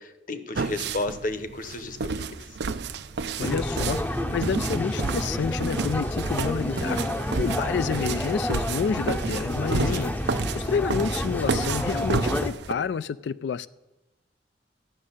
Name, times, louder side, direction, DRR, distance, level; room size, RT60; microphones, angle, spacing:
voice 1, 0.0-2.3 9.9-10.1, left 2 dB, 45° left, 1.0 m, -33 dB
sound 1, 0.5-12.7, right 4 dB, 70° right, 0.6 m, -31 dB
voice 2, 3.4-10.1 10.5-13.7, left 6 dB, 70° left, 0.3 m, -29 dB
sound 2, 3.4-12.5, left 1 dB, 10° left, 0.6 m, -29 dB
13.0 x 6.4 x 9.8 m
head